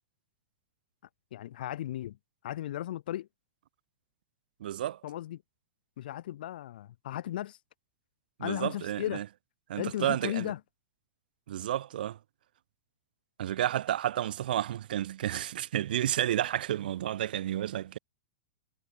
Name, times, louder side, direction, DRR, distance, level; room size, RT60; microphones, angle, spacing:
voice 1, 1.3-2.2 2.4-3.3 5.0-5.4 6.0-7.6 8.4-9.2 9.8-10.6, left 13 dB, 55° left, 0.4 m, -35 dB
voice 2, 4.6-5.0 8.4-9.2 9.7-10.5 11.5-12.2 13.4-18.0, right 12 dB, 60° right, 0.7 m, -31 dB
figure-of-eight pair, 100°, 6 cm